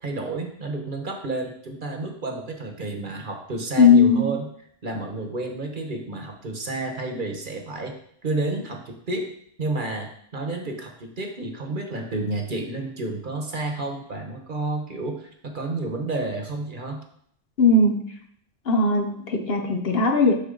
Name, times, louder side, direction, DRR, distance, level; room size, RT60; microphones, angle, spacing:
voice 1, 0.0-4.5 4.8-8.0 8.2-9.3 9.6-17.0, right 2 dB, 45° right, 3 dB, 1.2 m, -30 dB
voice 2, 3.8-4.4 17.6-18.1 18.7-20.3, left 3 dB, 60° left, 4 dB, 1.0 m, -18 dB
6.9 x 6.1 x 3.8 m, 0.66 s
omnidirectional pair, 1.2 m